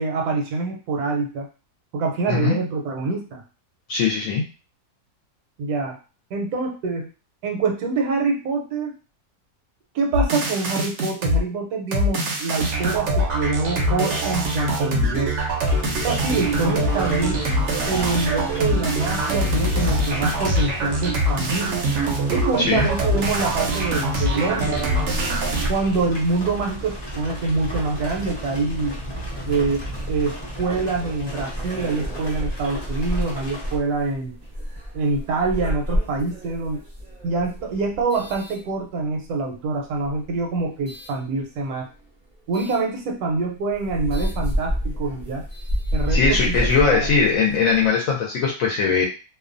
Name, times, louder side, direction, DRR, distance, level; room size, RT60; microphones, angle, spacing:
voice 1, 0.0-1.5 1.9-3.4 5.6-6.0 6.3-7.1 7.4-8.9 9.9-15.3 16.0-17.4 17.9-21.8 22.3-25.0 25.7-28.9 29.5-34.4 34.9-36.8 37.2-41.9 42.5-45.4 45.9-46.6 46.8-47.1, right 3 dB, 85° right, 2 dB, 1.1 m, -25 dB
voice 2, 3.9-4.4 22.7-22.9 46.1-49.1, left 5 dB, 70° left, -2 dB, 0.9 m, -20 dB
sound 1, 10.1-11.4 11.9-25.7, right 1 dB, 65° right, 0.7 m, -23 dB
sound 2, 15.6-33.7, equal, 35° left, 0.4 m, -33 dB
sound 3, 29.2-39.3 39.9-41.2 42.5-42.8 43.3-43.4 43.7-47.9, equal, 40° right, 0.4 m, -30 dB
2.6 x 2.1 x 2.5 m, 0.34 s
omnidirectional pair, 1.6 m